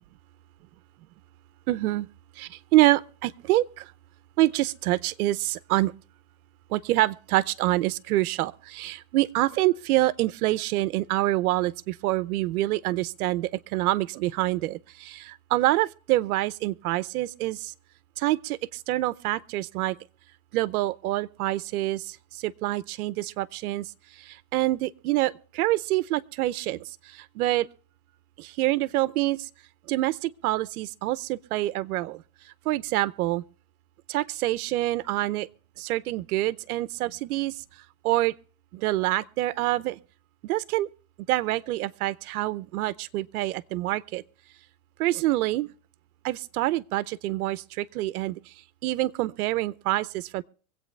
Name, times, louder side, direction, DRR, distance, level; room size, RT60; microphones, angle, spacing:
voice 1, 1.7-2.1 2.4-3.9 4.4-5.9 6.7-17.7 18.2-18.6 18.9-20.0 20.5-23.9 24.2-27.7 28.4-29.5 29.9-32.2 32.7-33.4 34.1-35.5 35.8-37.5 38.0-38.3 38.7-40.0 40.4-40.9 41.3-44.2 45.0-45.7 46.2-48.4 48.8-50.4, right 17 dB, 80° right, 0.8 m, -26 dB
24.5 x 8.4 x 3.3 m
supercardioid pair, 140°, 44 cm